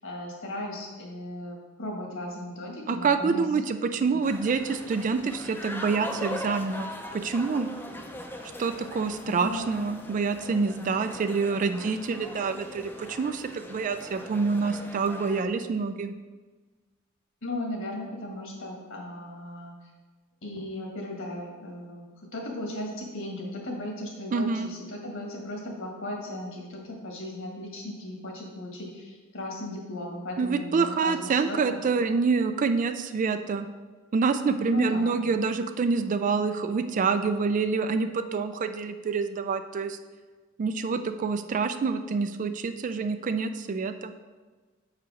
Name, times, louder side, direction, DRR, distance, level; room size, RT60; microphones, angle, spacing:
voice 1, 0.0-3.4 9.4-9.7 17.4-19.9 20.4-22.0 22.3-31.8 34.7-35.4, left 1 dB, 65° left, 0 dB, 1.7 m, -36 dB
voice 2, 2.9-6.9 7.2-7.7 8.6-16.1 24.3-24.7 30.4-33.7 34.1-40.0 40.6-44.1, right 4 dB, 35° right, 9 dB, 0.3 m, -27 dB
sound 1, 4.2-15.4, left 1 dB, 10° left, 0.6 m, -40 dB
6.8 x 4.9 x 4.8 m, 1.3 s
head